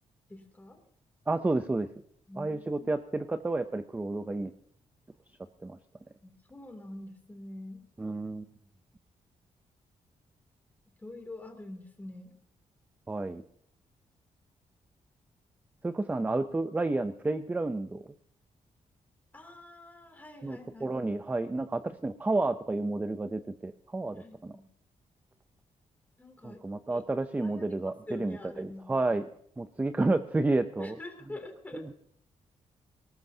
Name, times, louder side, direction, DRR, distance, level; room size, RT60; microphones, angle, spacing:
voice 1, 0.3-0.8 2.3-2.9 6.2-7.9 11.0-12.4 19.3-21.0 24.2-24.6 26.2-26.6 26.9-27.0 27.4-29.0 30.8-31.9, left 2 dB, 15° left, 4 dB, 2.7 m, -45 dB
voice 2, 1.3-1.9 2.4-4.5 5.6-5.8 8.0-8.4 13.1-13.4 15.8-18.0 20.4-24.6 26.4-29.2 29.6-31.0 31.7-31.9, right 2 dB, 15° right, 10 dB, 0.5 m, -31 dB
19.5 x 18.5 x 2.8 m, 0.67 s
wide cardioid pair, 145°, 12 cm